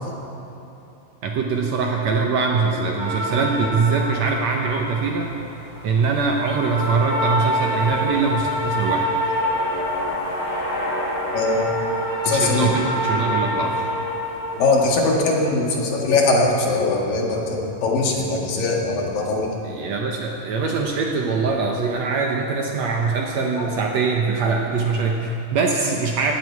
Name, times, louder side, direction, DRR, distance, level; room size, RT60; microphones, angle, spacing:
voice 1, 1.2-5.3 5.8-9.1 12.3-13.9 19.6-26.3, right 4 dB, 65° right, 1 dB, 1.8 m, -22 dB
sound 1, 3.0-15.1, equal, 30° left, 5.1 m, -26 dB
voice 2, 11.3-11.7 12.3-12.7 14.5-19.5 23.6-23.7, left 3 dB, 75° left, -1 dB, 3.5 m, -21 dB
18.0 x 15.5 x 4.7 m, 2.9 s
omnidirectional pair, 4.0 m